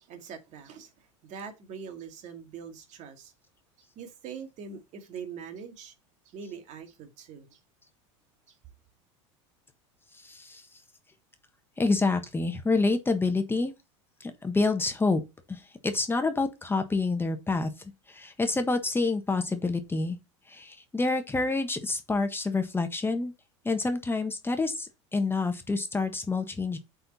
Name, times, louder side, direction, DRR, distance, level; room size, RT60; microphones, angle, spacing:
voice 1, 0.1-0.9 1.2-3.3 4.0-5.9 6.3-7.6, right 6 dB, 50° right, 2.2 m, -42 dB
voice 2, 10.2-10.6 11.8-13.7 14.2-15.2 15.5-17.7 18.1-20.2 20.5-23.3 23.6-26.8, left 3 dB, 15° left, 1.3 m, -28 dB
7.9 x 4.4 x 4.2 m
hypercardioid pair, 95°, 16 cm